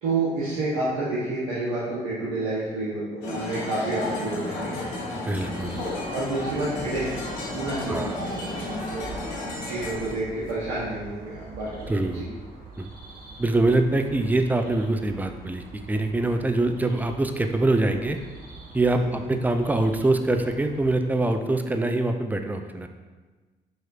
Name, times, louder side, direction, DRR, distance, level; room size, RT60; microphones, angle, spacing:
voice 1, 0.0-4.7 6.1-7.2 7.5-9.1 9.6-12.2 18.9-19.1, right 2 dB, 80° right, -9 dB, 0.9 m, -29 dB
sound 1, 3.2-10.1, left 1 dB, 80° left, 0.7 m, -33 dB
voice 2, 5.3-5.9 7.9-8.2 11.9-12.3 12.8-12.9 13.4-18.2 18.7-22.9, right 2 dB, 10° right, 6 dB, 0.3 m, -24 dB
sound 2, 5.3-21.0, right 3 dB, 45° right, 0.8 m, -44 dB
4.2 x 3.0 x 2.4 m, 1.3 s
hypercardioid pair, 50°, 21 cm